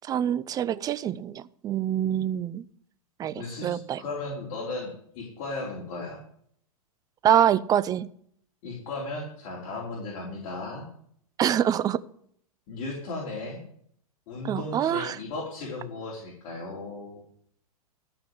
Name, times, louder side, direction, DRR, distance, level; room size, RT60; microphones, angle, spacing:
voice 1, 0.0-2.6 3.2-4.0 7.2-8.1 11.4-12.0 14.4-15.2, right 10 dB, 20° right, 18 dB, 0.5 m, -25 dB
voice 2, 3.3-6.2 8.6-10.9 12.7-13.6 14.3-17.2, left 2 dB, 45° left, -4 dB, 4.3 m, -36 dB
13.5 x 5.8 x 8.0 m, 0.64 s
hypercardioid pair, 105°, 19 cm